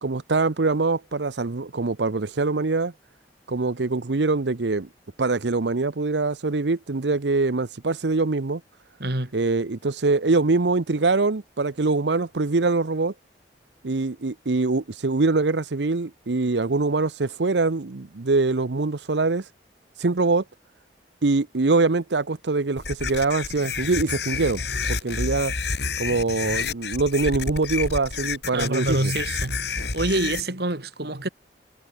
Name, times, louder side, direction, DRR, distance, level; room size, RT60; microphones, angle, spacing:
voice 1, 0.0-2.9 3.5-4.9 5.2-8.6 9.3-13.1 13.8-19.4 20.0-20.4 21.2-24.6 24.9-25.5 26.0-29.1, right 3 dB, 80° right, 0.8 m, -23 dB
voice 2, 9.0-9.3 28.5-31.3, right 2 dB, 65° right, 2.8 m, -26 dB
sound 1, 22.8-30.4, left 4 dB, 70° left, 3.4 m, -29 dB
head